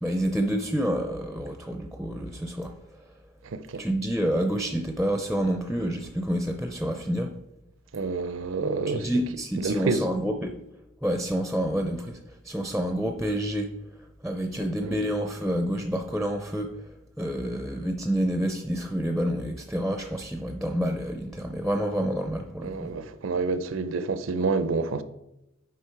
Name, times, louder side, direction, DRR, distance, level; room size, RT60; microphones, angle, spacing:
voice 1, 0.0-2.7 3.8-7.3 8.9-10.6 11.0-13.7 14.2-16.9 17.2-22.9, equal, ahead, 0.4 m, -28 dB
voice 2, 3.4-3.8 7.9-9.1 9.6-10.1 14.8-15.0 22.6-25.0, right 3 dB, 75° right, 0.5 m, -28 dB
8.1 x 5.1 x 4.5 m
head